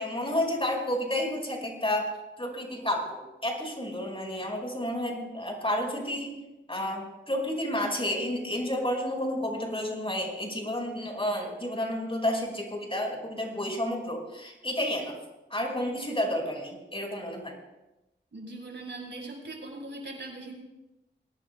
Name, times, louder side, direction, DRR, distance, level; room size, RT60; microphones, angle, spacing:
voice 1, 0.0-2.1 2.4-6.4 6.7-15.1 15.5-17.5, left 1 dB, 30° left, 0 dB, 5.0 m, -31 dB
voice 2, 18.3-20.5, right 2 dB, 70° right, -2 dB, 6.0 m, -40 dB
23.0 x 18.5 x 2.3 m, 0.97 s
wide cardioid pair, 55°, 20 cm